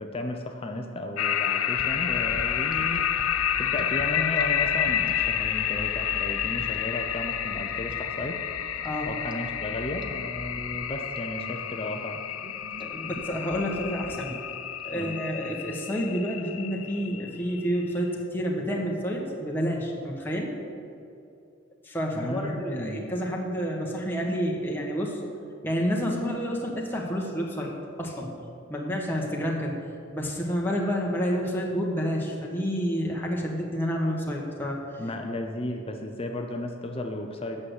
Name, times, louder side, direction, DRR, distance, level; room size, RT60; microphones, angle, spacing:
voice 1, 0.0-3.0 3.6-8.4 9.1-12.2 14.9-15.2 22.1-23.1 35.0-37.6, left 1 dB, 25° left, 3 dB, 0.6 m, -34 dB
sound 1, 1.2-17.9, left 9 dB, 85° left, 0.5 m, -29 dB
sound 2, 1.7-14.8, right 2 dB, 25° right, 0.5 m, -44 dB
voice 2, 12.8-14.3 14.8-20.5 21.8-25.2 25.6-27.7 28.0-28.3 28.7-29.7 30.1-34.8, equal, 10° left, -2 dB, 1.2 m, -29 dB
8.6 x 6.5 x 7.9 m, 2.6 s
head